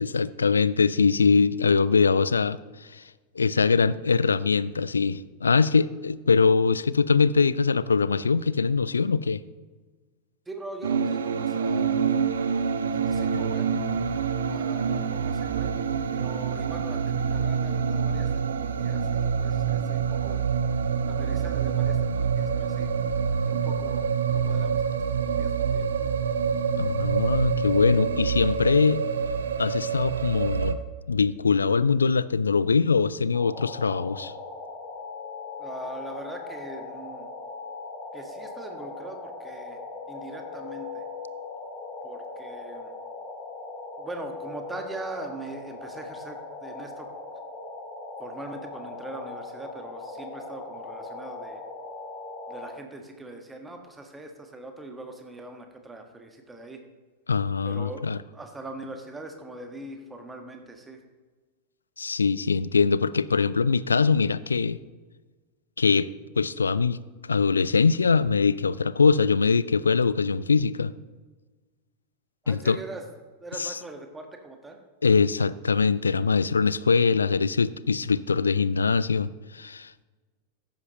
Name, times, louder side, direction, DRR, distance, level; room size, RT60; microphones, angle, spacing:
voice 1, 0.0-2.6 2.9-3.0 3.4-9.4 26.8-29.0 29.6-30.8 31.1-34.3 57.3-58.2 62.0-64.8 65.8-66.1 66.4-67.0 67.3-70.9 72.5-72.8 73.6-73.7 75.0-80.0, left 5 dB, 75° left, 18 dB, 0.3 m, -22 dB
voice 2, 10.4-12.1 12.9-13.8 14.3-15.7 16.1-20.5 21.1-22.9 23.5-24.0 24.3-25.9 35.6-37.3 38.1-41.0 42.0-42.9 44.0-47.1 48.2-51.6 52.5-56.8 57.6-61.0 72.4-73.0 73.4-74.8, right 2 dB, 10° right, 5 dB, 1.4 m, -41 dB
sound 1, 10.8-30.7, right 6 dB, 65° right, 0.6 m, -26 dB
sound 2, 33.3-52.7, left 3 dB, 30° left, 2.8 m, -39 dB
14.0 x 10.5 x 3.0 m, 1.3 s
figure-of-eight pair, 90°, 0 cm